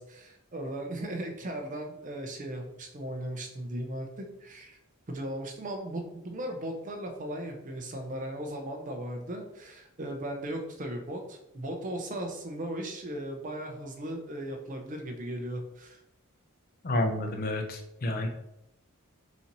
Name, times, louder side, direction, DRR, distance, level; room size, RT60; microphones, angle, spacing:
voice 1, 0.0-4.8 5.1-16.0, right 1 dB, 35° right, 3 dB, 0.5 m, -37 dB
voice 2, 16.8-18.3, left 1 dB, 40° left, 4 dB, 0.5 m, -29 dB
4.0 x 2.6 x 2.9 m, 0.84 s
head